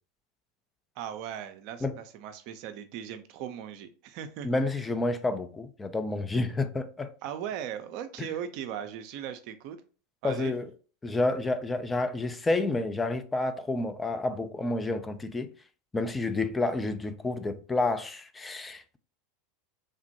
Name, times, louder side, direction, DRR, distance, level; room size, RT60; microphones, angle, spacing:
voice 1, 1.0-4.5 7.2-9.8 10.2-10.5, right 9 dB, 55° right, 0.4 m, -38 dB
voice 2, 4.4-7.1 8.2-8.3 10.2-10.7 11.0-15.5 15.9-19.0, left 2 dB, 15° left, 0.3 m, -29 dB
3.3 x 2.1 x 2.7 m
hypercardioid pair, 85°, 0 cm